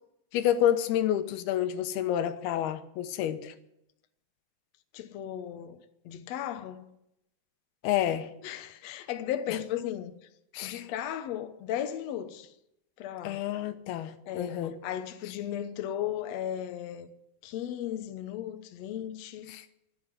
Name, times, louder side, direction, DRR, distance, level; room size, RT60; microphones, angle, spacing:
voice 1, 0.3-3.5 7.8-8.3 10.5-10.9 13.2-14.8 19.5-19.7, left 11 dB, 90° left, 2.9 m, -29 dB
voice 2, 4.9-5.8 6.0-6.9 8.4-10.1 10.6-12.5 13.0-13.4 14.3-17.1 17.4-19.5, left 11 dB, 70° left, 1.6 m, -36 dB
12.5 x 10.5 x 9.5 m
omnidirectional pair, 4.3 m